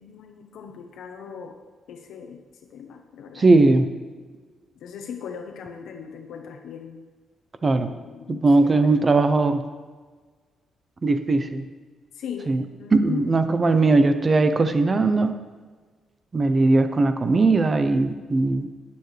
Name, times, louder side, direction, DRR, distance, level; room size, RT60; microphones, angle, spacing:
voice 1, 0.0-1.6 1.9-2.4 2.7-3.6 4.8-7.0 7.9-9.1 12.1-13.3, left 7 dB, 80° left, 3 dB, 1.0 m, -38 dB
voice 2, 3.4-3.9 7.6-7.9 8.3-9.6 11.0-11.7 12.5-12.6 12.9-15.3 16.3-18.7, right 3 dB, 25° right, 9 dB, 0.6 m, -19 dB
19.5 x 7.0 x 3.3 m, 1.4 s
cardioid pair, 175°, 0 cm